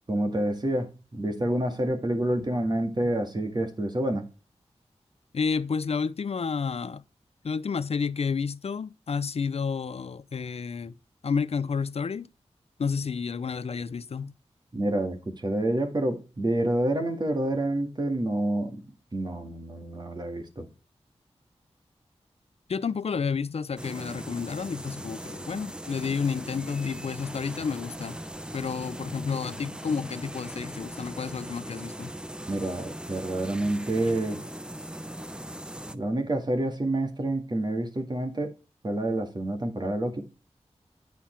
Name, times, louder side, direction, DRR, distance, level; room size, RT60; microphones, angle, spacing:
voice 1, 0.1-4.3 14.7-18.8 19.1-20.7 32.5-34.4 35.9-38.5 38.8-40.2, right 1 dB, 40° right, 1.9 m, -28 dB
voice 2, 5.3-7.0 7.4-11.0 11.2-12.3 12.8-14.3 22.7-28.2 28.5-32.1, left 5 dB, 65° left, 0.5 m, -30 dB
sound 1, 23.8-35.9, right 1 dB, 10° right, 0.6 m, -39 dB
9.5 x 5.7 x 4.4 m
wide cardioid pair, 100°, 11 cm